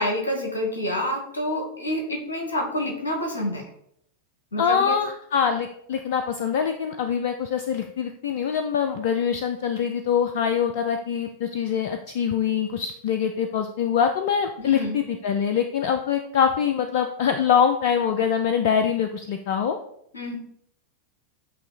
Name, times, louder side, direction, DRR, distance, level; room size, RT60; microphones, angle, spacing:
voice 1, 0.0-3.6 4.5-5.0 14.6-15.0 20.1-20.4, left 1 dB, 75° left, 3 dB, 1.2 m, -28 dB
voice 2, 4.6-19.8, left 7 dB, 50° left, 7 dB, 0.4 m, -24 dB
8.3 x 2.8 x 4.0 m, 0.70 s
figure-of-eight pair, 90°, 0 cm